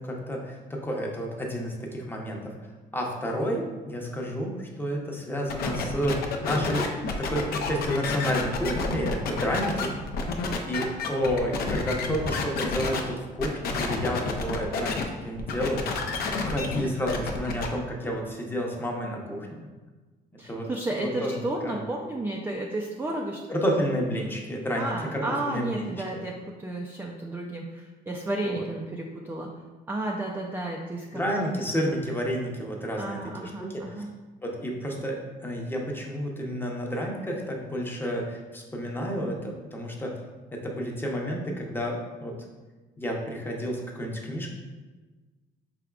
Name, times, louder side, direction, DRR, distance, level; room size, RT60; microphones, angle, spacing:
voice 1, 0.0-2.5 2.9-9.9 10.6-16.0 16.5-19.7 20.5-20.7 21.0-21.4 21.6-21.8 23.5-26.2 28.4-28.6 31.1-33.9 34.4-40.2 40.5-42.3 43.0-44.5, equal, 10° left, -1 dB, 0.7 m, -30 dB
sound 1, 5.5-13.0 13.4-15.0 15.4-17.7, left 4 dB, 65° left, 0.5 m, -30 dB
voice 2, 20.4-23.4 24.8-29.5 29.9-31.7 33.0-34.1, right 2 dB, 10° right, -1 dB, 0.3 m, -32 dB
4.7 x 3.5 x 2.3 m, 1.3 s
cardioid pair, 110°, 17 cm